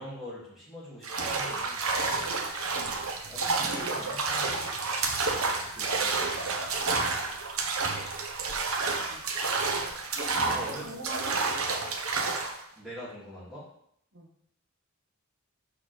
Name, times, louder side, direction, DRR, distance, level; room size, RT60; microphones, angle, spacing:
voice 1, 0.0-1.8 2.7-4.7 5.7-6.5 10.3-10.9 12.8-13.7, equal, ahead, -8 dB, 3.2 m, -43 dB
sound 1, 1.0-12.6, right 3 dB, 75° right, 1.0 m, -30 dB
voice 2, 10.1-11.6 14.1-14.3, right 1 dB, 60° right, -1 dB, 1.8 m, -42 dB
5.9 x 4.8 x 6.4 m, 0.69 s
head